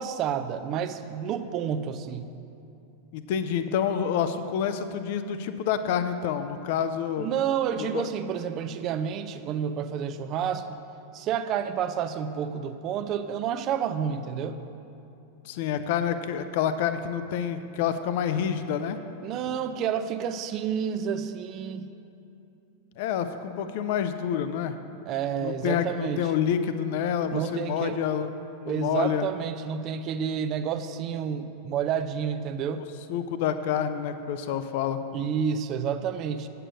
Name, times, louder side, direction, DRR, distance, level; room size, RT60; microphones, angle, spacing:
voice 1, 0.0-2.3 7.2-10.7 11.1-14.6 19.2-21.9 25.1-26.3 27.3-28.0 28.7-32.8 35.1-36.5, right 8 dB, 35° right, 10 dB, 0.5 m, -29 dB
voice 2, 3.1-7.3 7.9-8.1 15.4-19.0 23.0-24.8 25.4-28.3 28.6-29.3 33.1-35.0, left 8 dB, 50° left, 10 dB, 0.5 m, -28 dB
8.7 x 6.8 x 6.2 m, 2.7 s
figure-of-eight pair, 90°, 0 cm